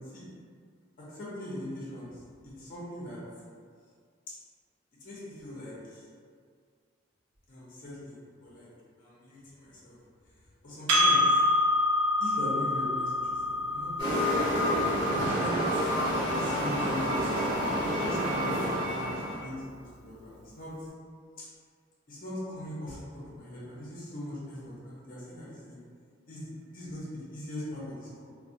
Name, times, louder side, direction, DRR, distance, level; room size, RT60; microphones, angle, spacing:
voice 1, 1.1-2.2 2.4-3.2 5.0-6.0 7.5-8.7 9.0-10.0 10.6-11.4 12.2-14.3 15.1-15.8 16.3-17.5 17.9-19.5 19.8-20.7 21.4-21.5 22.1-23.0 23.3-25.8 26.3-28.2, left 1 dB, 45° left, -7 dB, 0.6 m, -40 dB
Percussion, 10.9-15.7, left 2 dB, 70° right, 0.6 m, -27 dB
sound 1, 14.0-19.5, equal, 25° right, 0.8 m, -28 dB
2.2 x 2.2 x 2.6 m, 2.1 s
head